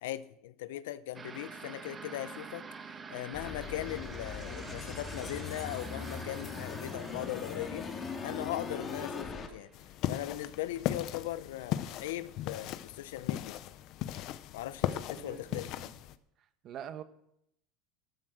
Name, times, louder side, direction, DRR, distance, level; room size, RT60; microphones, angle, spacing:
voice 1, 0.0-2.7 3.1-7.9 8.2-9.7 10.1-13.6 14.5-15.7, left 14 dB, 85° left, 15 dB, 0.7 m, -39 dB
sound 1, 1.1-10.2, right 5 dB, 25° right, 1.4 m, -48 dB
sound 2, 3.3-9.5, left 5 dB, 30° left, 2.3 m, -40 dB
sound 3, 9.7-16.1, left 12 dB, 55° left, 0.8 m, -37 dB
voice 2, 14.8-16.0 16.4-17.0, right 9 dB, 45° right, 10 dB, 1.3 m, -46 dB
13.5 x 12.0 x 6.2 m, 0.77 s
supercardioid pair, 125°, 0 cm